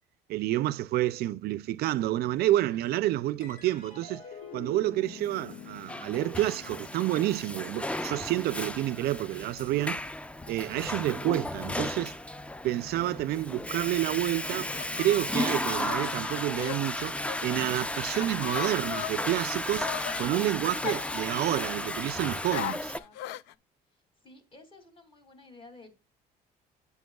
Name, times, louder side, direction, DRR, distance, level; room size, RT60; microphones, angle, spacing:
voice 1, 0.3-4.2 4.5-10.0 10.5-12.2 12.6-14.7 15.0-19.9 20.2-22.8, right 15 dB, 70° right, 0.4 m, -29 dB
voice 2, 2.7-3.0 22.5-23.2 23.5-23.6 23.9-25.9, left 3 dB, 30° left, 2.5 m, -54 dB
sound 1, 3.4-10.1, left 5 dB, 50° left, 2.0 m, -48 dB
Water / Toilet flush, 5.5-23.0, left 1 dB, 5° left, 0.4 m, -34 dB
sound 2, 14.5-17.7 18.1-20.3 20.8-21.8 22.5-23.5, left 13 dB, 90° left, 0.4 m, -39 dB
9.2 x 8.3 x 2.3 m
cardioid pair, 110°, 17 cm